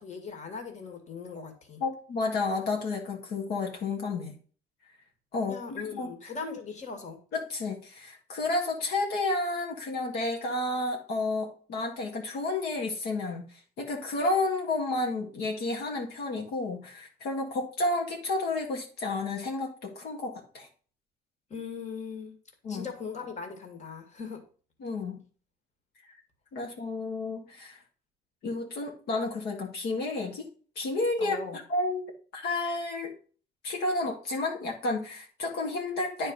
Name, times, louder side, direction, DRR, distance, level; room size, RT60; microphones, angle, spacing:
voice 1, 0.0-1.8 5.4-7.2 21.5-22.3 22.7-24.4 31.2-31.6, left 5 dB, 45° left, 5 dB, 2.2 m, -39 dB
voice 2, 1.8-4.3 5.3-6.3 7.3-20.7 22.6-22.9 24.8-25.2 26.1-26.2 26.5-27.8 28.4-30.5 30.8-33.1 33.6-36.3, left 2 dB, 70° left, 0 dB, 1.8 m, -31 dB
9.4 x 4.5 x 5.5 m, 0.40 s
cardioid pair, 110°, 17 cm